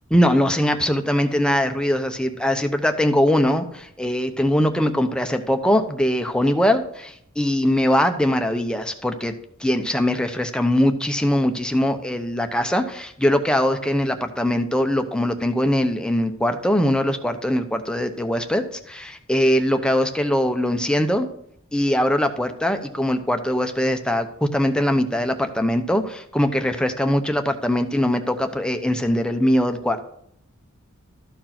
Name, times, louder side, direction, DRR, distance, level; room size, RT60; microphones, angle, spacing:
voice 1, 0.1-9.3 9.6-21.3 21.7-30.0, equal, 5° left, 6 dB, 0.8 m, -21 dB
13.5 x 4.6 x 5.9 m, 0.70 s
head